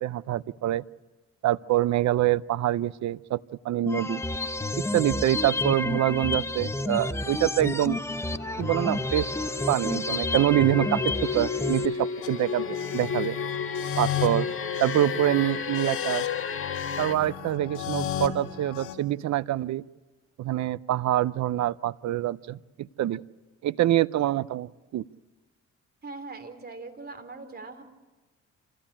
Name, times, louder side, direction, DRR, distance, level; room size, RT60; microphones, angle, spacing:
voice 1, 0.0-0.8 1.4-3.4 3.6-4.2 4.8-8.0 8.6-9.3 9.7-13.4 14.0-14.5 14.8-16.3 17.0-19.8 20.4-23.2 23.6-25.0, right 13 dB, 65° right, 18 dB, 0.7 m, -25 dB
sound 1, 3.9-11.9, left 2 dB, 10° left, 0.9 m, -30 dB
sound 2, 8.2-17.1, left 6 dB, 45° left, 1.8 m, -33 dB
sound 3, 12.2-18.9, left 9 dB, 80° left, 2.6 m, -34 dB
voice 2, 26.0-27.8, right 3 dB, 30° right, 6 dB, 3.4 m, -41 dB
27.0 x 16.0 x 8.7 m, 1.2 s
cardioid pair, 90°, 30 cm